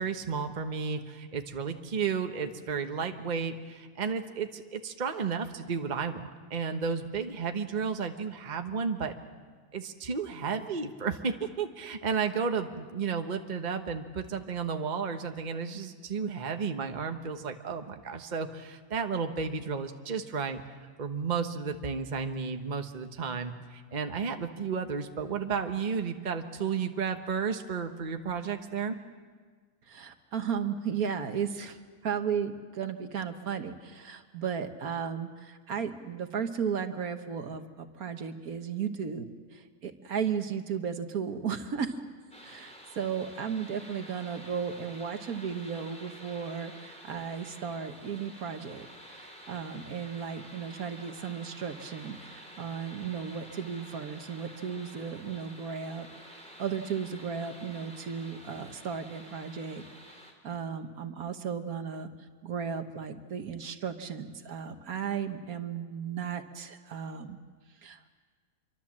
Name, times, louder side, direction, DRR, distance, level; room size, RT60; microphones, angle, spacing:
voice 1, 0.0-9.1 9.7-20.6 21.0-29.0, right 5 dB, 30° right, 6 dB, 1.2 m, -33 dB
voice 2, 29.9-31.8 32.0-39.3 39.5-41.9 42.4-56.1 56.6-59.8 60.1-62.1 62.4-67.4 67.8-68.2, right 7 dB, 70° right, 7 dB, 1.6 m, -35 dB
sound 1, 42.3-60.3, equal, 5° left, 3.5 m, -50 dB
26.0 x 24.0 x 7.5 m, 1.5 s
omnidirectional pair, 1.6 m